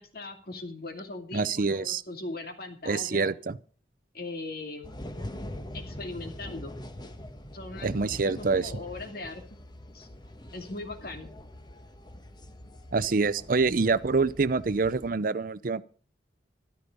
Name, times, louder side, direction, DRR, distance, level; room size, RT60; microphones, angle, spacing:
voice 1, 0.0-3.3 4.1-4.9 5.7-6.8 7.5-8.0 8.2-9.4 9.9-10.1 10.5-11.3, left 2 dB, 60° left, 2.6 m, -39 dB
voice 2, 1.3-2.0 2.9-3.6 7.8-8.7 12.9-15.8, right 4 dB, 50° right, 0.6 m, -26 dB
sound 1, 4.8-15.1, left 1 dB, 25° left, 1.3 m, -43 dB
13.0 x 13.0 x 5.3 m
head